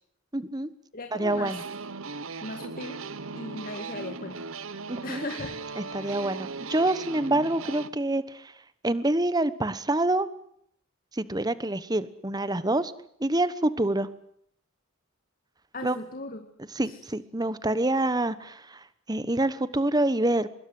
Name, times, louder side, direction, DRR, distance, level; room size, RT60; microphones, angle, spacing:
voice 1, 0.3-0.7 1.1-1.6 4.9-5.2 5.8-8.5 8.8-10.3 11.1-12.9 13.2-14.1 15.8-16.0 16.7-20.5, right 1 dB, 20° right, 15 dB, 1.1 m, -26 dB
voice 2, 0.9-1.5 2.4-3.0 3.3-4.5 5.0-5.5 6.0-6.2 15.7-16.4 16.9-17.0, left 2 dB, 40° left, 6 dB, 2.0 m, -37 dB
sound 1, 1.3-7.9, right 4 dB, 75° right, 1.1 m, -38 dB
25.0 x 22.5 x 7.8 m, 0.69 s
head